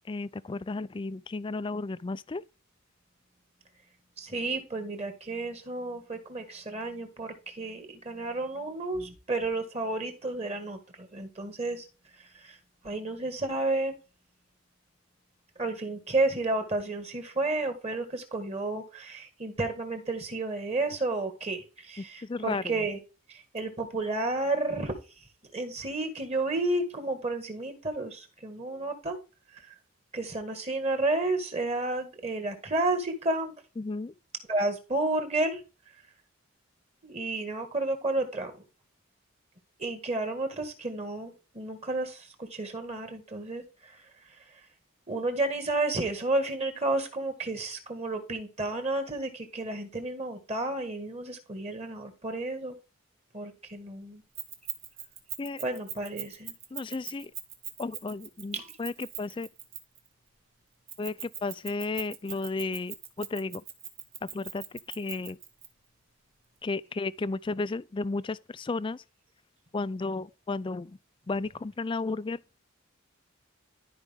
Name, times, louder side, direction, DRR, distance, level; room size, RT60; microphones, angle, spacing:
voice 1, 0.1-2.4 22.0-22.8 33.8-34.1 55.4-55.6 56.7-57.3 57.8-59.5 61.0-63.6 64.2-65.4 66.6-69.0 69.7-70.9 71.3-72.4, left 3 dB, 25° left, 0.3 m, -33 dB
voice 2, 4.2-11.9 12.4-12.6 12.8-14.0 15.6-23.0 23.5-24.9 25.5-29.2 29.6-29.7 30.1-33.5 34.5-35.6 37.0-38.5 39.8-43.6 45.1-52.8 53.3-54.2 55.6-56.5 58.5-58.7, right 2 dB, 30° right, 1.9 m, -31 dB
Keys jangling, 54.4-60.1 60.9-65.7, right 10 dB, 65° right, 2.0 m, -40 dB
12.5 x 5.1 x 3.6 m
head